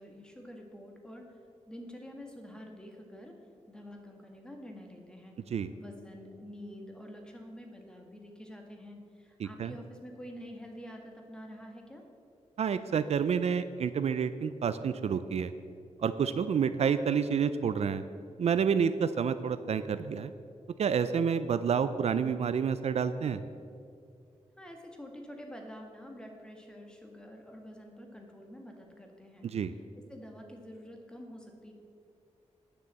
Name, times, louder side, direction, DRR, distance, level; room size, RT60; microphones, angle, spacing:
voice 1, 0.0-1.4 1.7-5.4 5.7-12.0 24.6-29.5 29.7-31.7, equal, 5° left, 2 dB, 1.6 m, -47 dB
voice 2, 9.4-9.7 12.6-15.5 16.0-18.0 18.4-20.3 20.8-23.4 29.4-29.7, right 7 dB, 65° right, 12 dB, 0.4 m, -29 dB
9.7 x 6.8 x 7.5 m, 2.4 s
wide cardioid pair, 110°, 12 cm